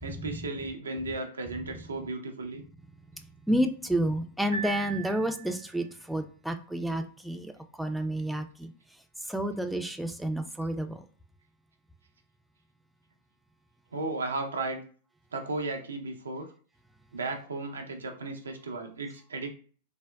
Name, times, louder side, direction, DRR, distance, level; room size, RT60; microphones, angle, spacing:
voice 1, 0.0-2.6 13.9-14.8 15.3-16.5 17.1-19.5, right 3 dB, 85° right, 4 dB, 0.5 m, -35 dB
voice 2, 3.5-7.5 7.8-8.7 9.3-11.0, right 1 dB, ahead, 6 dB, 0.3 m, -30 dB
Piano, 4.5-5.8, right 6 dB, 80° left, 1.2 m, -38 dB
3.4 x 2.1 x 2.2 m, 0.42 s
hypercardioid pair, 105°, 0 cm